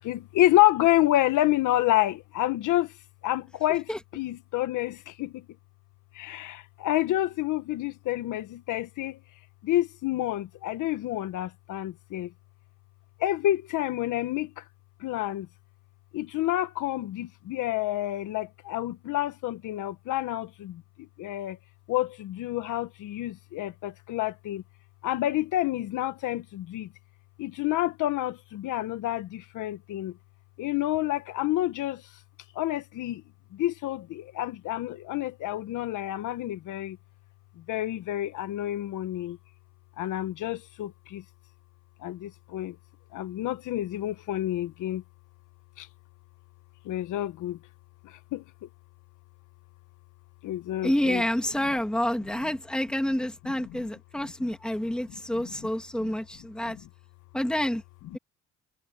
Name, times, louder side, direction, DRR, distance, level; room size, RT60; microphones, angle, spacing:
voice 1, 0.0-2.9 3.2-5.4 6.1-9.2 9.6-12.3 13.2-14.6 15.0-15.5 16.1-20.8 21.2-21.6 21.9-24.6 25.0-26.9 27.4-30.1 30.6-32.1 32.5-33.2 33.5-37.0 37.6-39.4 40.0-41.2 42.0-42.8 43.1-45.0 45.8-45.9 46.8-47.6 48.0-48.4 50.4-51.2 51.6-51.7 53.7-53.9 55.1-55.7 56.0-56.1 56.7-56.8 58.1-58.2, left 14 dB, 80° left, 1.4 m, -28 dB
voice 2, 50.8-56.8 57.3-57.8, left 1 dB, 5° left, 2.7 m, -28 dB
cardioid pair, 115°, 31 cm